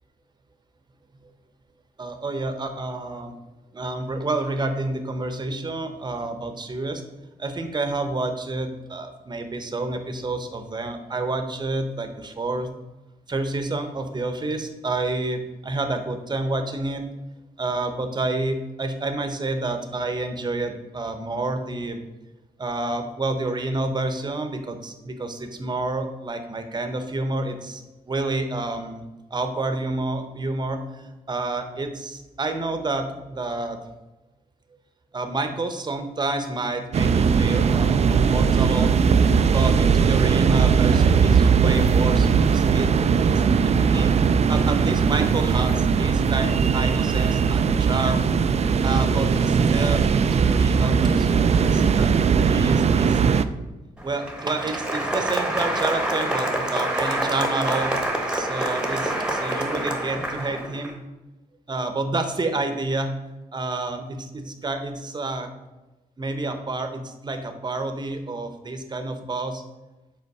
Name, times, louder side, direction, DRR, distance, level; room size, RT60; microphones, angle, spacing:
voice 1, 2.0-3.3 3.7-7.0 7.4-12.7 13.3-17.1 17.6-22.0 22.6-29.0 29.3-33.8 35.1-38.9 39.4-42.9 43.2-43.3 43.6-44.1 44.5-48.3 48.8-52.1 52.4-53.2 54.0-57.9 58.3-61.0 61.7-63.2 63.5-65.5 66.2-69.6, right 2 dB, 30° right, 7 dB, 0.8 m, -29 dB
sound 1, 36.9-53.4, right 6 dB, 45° right, 0.4 m, -19 dB
Applause, 54.0-60.9, right 1 dB, 5° right, 1.1 m, -26 dB
5.3 x 4.3 x 5.4 m, 1.0 s
cardioid pair, 105°, 15 cm